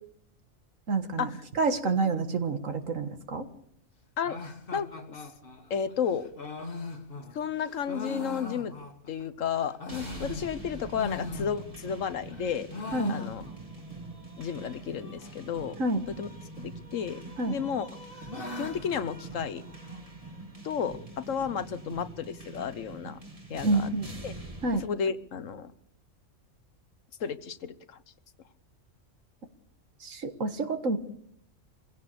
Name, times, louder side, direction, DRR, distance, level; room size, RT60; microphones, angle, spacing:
voice 1, 0.9-1.3 1.6-3.5 12.9-13.2 15.8-16.1 17.4-17.6 23.6-24.1 24.6-24.8 30.0-31.0, right 3 dB, 80° right, 8 dB, 2.0 m, -28 dB
sound 1, 4.2-9.2 9.6-12.0 12.3-13.8 14.1-14.2 14.4-14.5 15.2-15.6 16.6-17.2 17.6-20.0, left 3 dB, 45° left, 1.7 m, -41 dB
voice 2, 4.7-5.2 5.7-6.3 7.3-8.7 9.1-12.7 13.1-13.4 14.4-15.8 16.2-16.3 16.6-17.2 17.5-17.9 18.6-19.6 20.6-23.2 23.5-23.9 24.2-24.3 24.7-25.7 27.2-28.0, left 7 dB, 75° left, 13 dB, 1.4 m, -32 dB
sound 2, 9.9-24.9, right 2 dB, 25° right, 2.5 m, -44 dB
24.5 x 16.5 x 6.9 m, 0.69 s
omnidirectional pair, 1.3 m